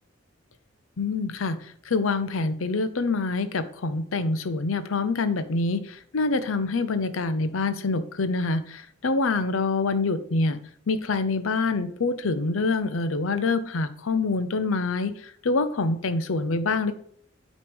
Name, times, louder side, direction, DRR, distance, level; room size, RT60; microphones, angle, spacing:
voice 1, 1.0-10.6 10.9-16.9, left 3 dB, 85° left, 12 dB, 0.7 m, -26 dB
8.5 x 3.2 x 5.2 m, 0.62 s
head